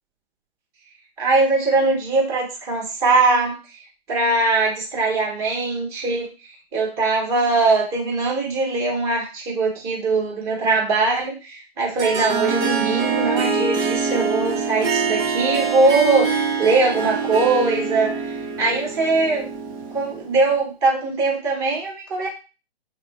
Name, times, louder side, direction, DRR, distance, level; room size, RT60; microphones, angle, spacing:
voice 1, 1.2-19.5 19.9-22.3, right 3 dB, 30° right, -2 dB, 2.5 m, -21 dB
Harp, 12.0-20.4, right 5 dB, 10° right, 0.4 m, -24 dB
5.6 x 2.3 x 3.5 m, 0.32 s
figure-of-eight pair, 125°, 32 cm